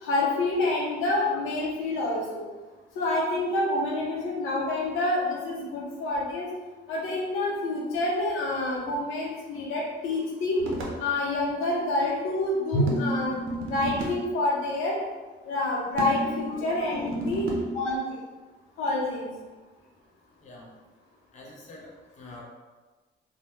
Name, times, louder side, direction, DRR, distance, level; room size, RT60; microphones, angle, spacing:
voice 1, 0.0-2.4 3.0-6.5 6.9-10.6 11.0-13.3 13.7-15.0 15.5-17.5 17.7-18.0 18.8-19.3, left 2 dB, 85° left, -3 dB, 0.6 m, -27 dB
sound 1, 10.6-11.0 12.9-14.2 16.0-17.7, right 1 dB, 85° right, 0.5 m, -32 dB
voice 2, 16.5-17.4 20.4-20.7 21.3-22.4, left 2 dB, 35° left, -3 dB, 0.6 m, -45 dB
2.1 x 2.1 x 3.0 m, 1.3 s
cardioid pair, 90°, 20 cm